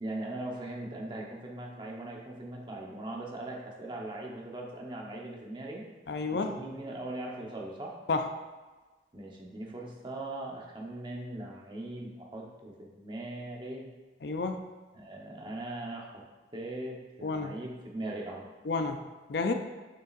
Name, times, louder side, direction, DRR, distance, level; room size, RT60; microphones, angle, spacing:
voice 1, 0.0-5.8 6.3-8.0 9.1-13.9 14.9-16.2 16.5-18.5, right 1 dB, 25° right, -1 dB, 0.9 m, -40 dB
voice 2, 6.1-6.5 8.1-8.3 14.2-14.6 17.2-17.5 18.6-19.0 19.3-19.5, left 3 dB, 60° left, 6 dB, 0.5 m, -30 dB
6.7 x 6.4 x 2.5 m, 1.3 s
head